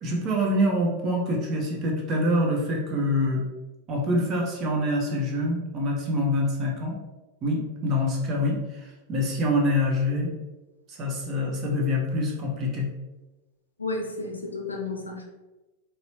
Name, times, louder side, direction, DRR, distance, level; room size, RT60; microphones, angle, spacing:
voice 1, 0.0-3.4 3.9-7.0 7.4-10.3 10.9-12.9, left 1 dB, 30° right, -2 dB, 0.8 m, -25 dB
voice 2, 13.8-15.2, left 2 dB, 80° left, 1 dB, 0.5 m, -32 dB
4.1 x 2.1 x 2.7 m, 1.1 s
figure-of-eight pair, 90°, 0 cm